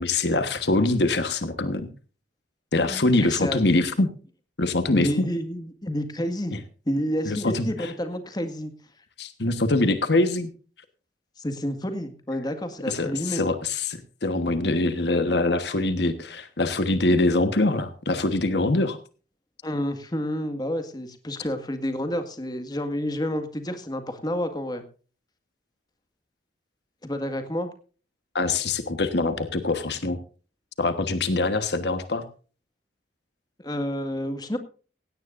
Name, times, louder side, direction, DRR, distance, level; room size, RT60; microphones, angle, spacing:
voice 1, 0.0-1.9 2.7-4.1 4.6-5.3 6.5-6.6 7.2-7.9 9.2-10.5 12.9-19.0 28.3-30.2 30.8-32.2, left 2 dB, 65° left, 9 dB, 1.3 m, -24 dB
voice 2, 2.7-3.6 4.9-6.6 6.9-8.7 11.4-13.5 19.6-24.8 27.0-27.7 33.6-34.6, equal, 20° left, 7 dB, 1.8 m, -29 dB
17.0 x 16.5 x 2.6 m, 0.38 s
head